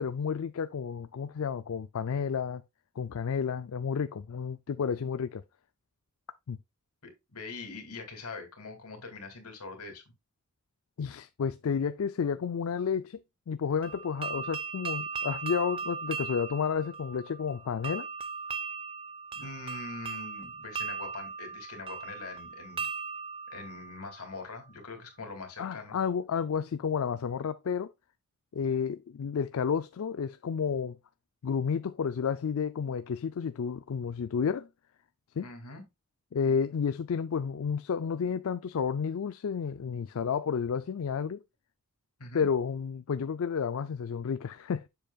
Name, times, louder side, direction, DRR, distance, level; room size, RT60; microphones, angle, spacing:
voice 1, 0.0-2.6 3.0-5.4 6.5-6.6 11.0-18.1 25.6-27.9 28.5-31.0 31.4-34.7 35.4-35.5 36.3-41.4 42.3-44.9, left 6 dB, 65° left, 0.4 m, -31 dB
voice 2, 7.0-10.0 19.3-22.9 23.5-26.0 35.4-35.8 42.2-42.5, left 3 dB, 85° left, 2.4 m, -43 dB
sound 1, 13.8-24.6, right 5 dB, 25° right, 0.6 m, -38 dB
7.6 x 6.9 x 2.3 m
head